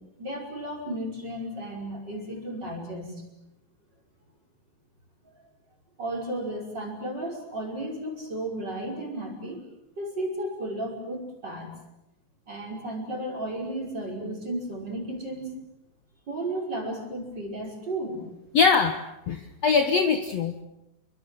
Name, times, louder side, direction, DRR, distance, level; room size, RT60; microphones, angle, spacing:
voice 1, 0.2-3.2 5.2-5.4 6.0-9.6 10.0-11.8 12.5-15.6 16.3-18.3, right 1 dB, 25° right, 0 dB, 5.9 m, -34 dB
voice 2, 18.5-19.0 19.3-20.6, left 5 dB, 65° left, 7 dB, 1.6 m, -22 dB
28.5 x 23.5 x 7.9 m, 0.88 s
omnidirectional pair, 4.9 m